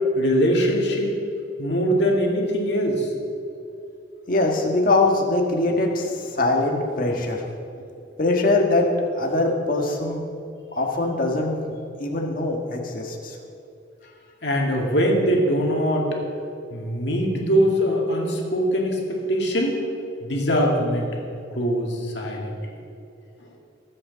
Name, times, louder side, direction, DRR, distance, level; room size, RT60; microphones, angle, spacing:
voice 1, 0.2-1.2 1.6-3.1 14.4-16.1 16.7-19.8 20.2-21.1 21.6-22.6, equal, 60° left, -1 dB, 2.0 m, -22 dB
voice 2, 4.3-7.5 8.2-10.2 10.7-11.6 12.0-13.4, left 2 dB, 45° left, 1 dB, 1.5 m, -22 dB
20.0 x 8.0 x 4.0 m, 2.6 s
head